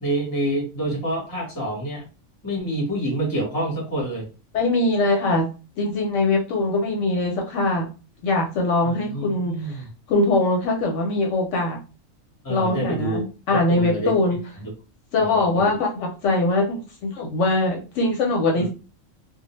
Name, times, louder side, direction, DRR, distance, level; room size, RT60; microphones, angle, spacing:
voice 1, 0.0-2.1 2.4-4.3 8.8-9.9 12.4-13.2 13.5-14.1 14.6-14.7 15.2-15.8 18.5-18.7, right 1 dB, 20° left, -1 dB, 0.7 m, -27 dB
voice 2, 4.5-5.5 5.8-7.8 8.2-9.8 10.1-11.8 12.5-14.4 15.1-18.7, left 2 dB, 70° left, 1 dB, 0.8 m, -22 dB
2.3 x 2.0 x 2.9 m, 0.33 s
omnidirectional pair, 1.4 m